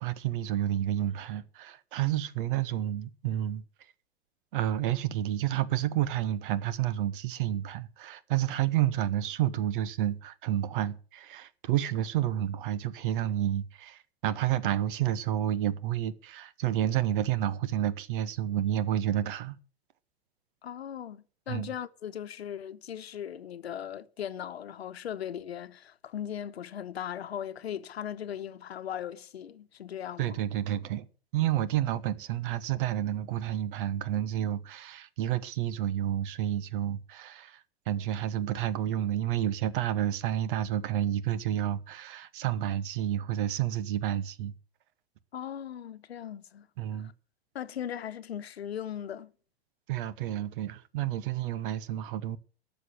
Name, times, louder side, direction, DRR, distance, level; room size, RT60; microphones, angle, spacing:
voice 1, 0.0-3.6 4.5-19.6 21.5-21.7 30.2-31.1 31.3-44.5 46.8-47.1 49.9-52.4, right 12 dB, 55° right, 1.2 m, -30 dB
voice 2, 20.6-30.4 45.3-46.7 47.0-47.1 47.5-49.3, left 9 dB, 75° left, 1.1 m, -38 dB
12.5 x 7.0 x 9.4 m
hypercardioid pair, 105°, 32 cm